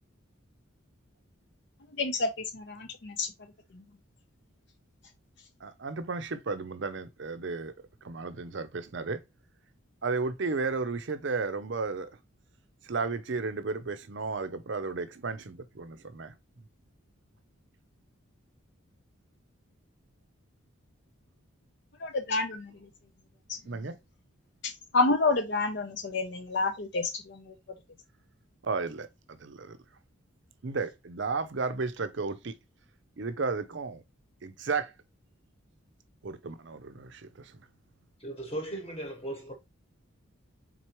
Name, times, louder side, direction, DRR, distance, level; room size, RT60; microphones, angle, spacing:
voice 1, 2.0-2.3 2.5-3.3 22.0-22.7 24.9-27.5, left 3 dB, 55° left, 0.6 m, -28 dB
voice 2, 5.6-7.7 8.0-9.2 10.0-12.1 12.9-16.4 23.7-24.0 28.6-29.8 30.6-32.5 33.2-34.0 34.4-34.9 36.2-37.6, right 4 dB, 55° right, 0.5 m, -33 dB
voice 3, 38.2-39.5, right 1 dB, 25° left, 1.1 m, -37 dB
4.5 x 4.0 x 3.0 m
head